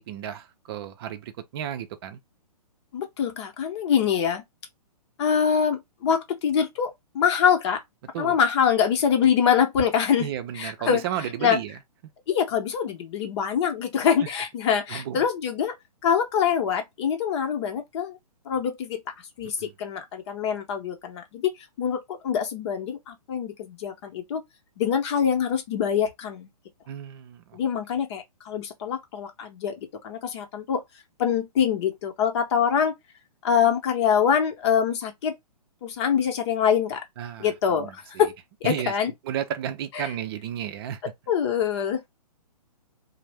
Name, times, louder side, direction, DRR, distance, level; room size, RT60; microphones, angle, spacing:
voice 1, 0.0-2.2 8.1-8.4 10.2-11.8 14.9-15.2 19.6-19.7 26.9-27.6 37.2-37.5 37.8-37.9 38.6-38.9 39.2-41.0, right 10 dB, 40° right, 0.5 m, -33 dB
voice 2, 2.9-4.4 5.2-7.8 8.2-10.3 10.5-11.6 12.3-15.8 16.0-18.2 18.4-21.5 21.8-24.4 24.8-26.5 27.5-30.8 31.2-32.9 33.4-35.4 35.8-37.0 37.4-38.3 38.6-39.1 39.9-40.1 41.0-42.0, left 7 dB, 45° left, 0.8 m, -24 dB
2.6 x 2.1 x 3.3 m
hypercardioid pair, 135°, 20 cm